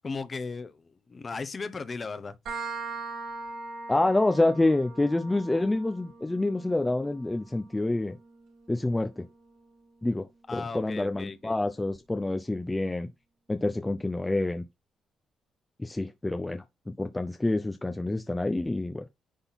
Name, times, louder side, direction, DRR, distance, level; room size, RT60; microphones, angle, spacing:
voice 1, 0.0-2.3 10.5-11.6, left 4 dB, 35° left, 1.0 m, -36 dB
sound 1, 2.5-9.9, right 3 dB, 75° right, 5.2 m, -42 dB
voice 2, 3.9-8.2 8.7-9.3 10.0-13.1 13.5-14.6 15.8-16.6 17.0-19.0, left 2 dB, 15° left, 0.7 m, -27 dB
10.0 x 3.8 x 4.1 m
cardioid pair, 90°, 0 cm